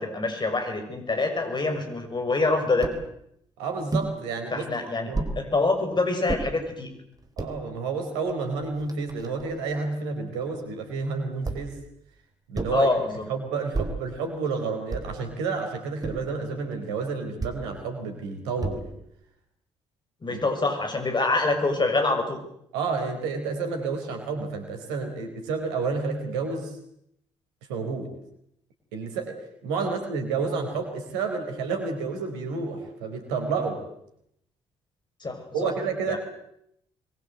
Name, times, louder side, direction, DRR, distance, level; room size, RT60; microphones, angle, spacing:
voice 1, 0.0-2.9 4.5-5.1 5.4-6.9 12.7-13.2 20.2-22.4 35.2-35.7 36.1-36.2, left 3 dB, 30° left, 6 dB, 6.3 m, -25 dB
sound 1, 2.8-3.0 3.9-4.1 5.1-5.4 6.3-6.5 7.2-7.5 8.3-8.4 8.6-9.6 11.4-11.8 12.5-12.9 13.7-14.1 14.9-15.2 16.0-16.4 17.4-17.6 18.6-19.0, right 2 dB, 25° right, 4.1 m, -31 dB
voice 2, 3.6-5.2 7.4-11.8 12.5-12.9 13.3-18.9 20.3-20.4 22.7-26.8 27.7-28.1 28.9-33.8 35.5-36.2, right 4 dB, 70° right, 5 dB, 4.4 m, -30 dB
24.5 x 22.0 x 7.9 m, 0.75 s
figure-of-eight pair, 45°, 15 cm